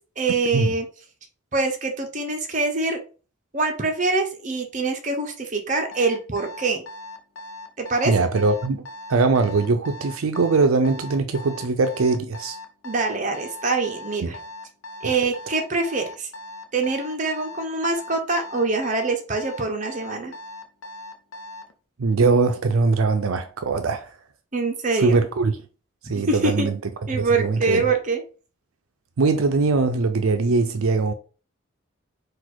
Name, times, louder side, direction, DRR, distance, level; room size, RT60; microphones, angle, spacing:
voice 1, 0.2-0.9 1.5-3.0 3.5-6.8 7.8-8.3 12.8-14.4 15.0-16.3 16.7-20.3 24.5-25.2 26.1-26.7 27.1-28.2, right 3 dB, 35° right, 0.8 m, -24 dB
Alarm, 5.9-21.7, left 1 dB, 75° left, 0.6 m, -39 dB
voice 2, 8.1-8.8 9.1-12.6 14.2-14.3 15.0-15.1 22.0-24.2 25.0-25.6 26.0-26.8 27.1-27.8 29.2-31.1, right 4 dB, 80° right, 0.5 m, -21 dB
4.1 x 2.5 x 4.5 m
head